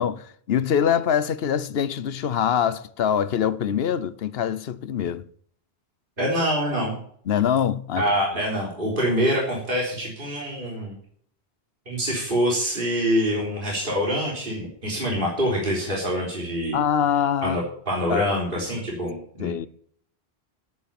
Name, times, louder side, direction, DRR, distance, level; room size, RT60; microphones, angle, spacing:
voice 1, 0.0-5.3 7.3-8.1 16.7-17.6 18.1-18.6 19.4-19.7, left 8 dB, 70° left, 1.0 m, -24 dB
voice 2, 6.2-6.9 8.0-10.9 11.9-16.8 17.4-19.5, equal, 55° right, 3.9 m, -25 dB
10.0 x 9.2 x 8.8 m
omnidirectional pair, 1.1 m